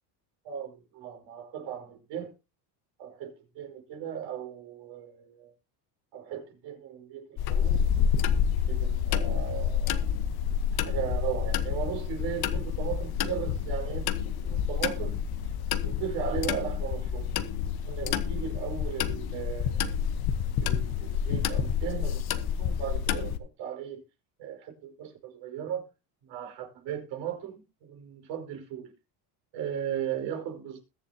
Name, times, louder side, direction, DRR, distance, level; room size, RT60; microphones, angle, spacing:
voice 1, 0.4-2.3 3.0-5.5 6.1-7.8 8.7-10.1 10.7-15.2 15.7-17.3 17.9-19.9 20.6-24.0 24.4-25.9 26.2-28.9 29.5-30.8, right 9 dB, 60° right, 5.4 m, -37 dB
sound 1, 7.4-23.4, left 8 dB, 50° left, 1.3 m, -28 dB
21.5 x 7.3 x 2.9 m
cardioid pair, 135°, 47 cm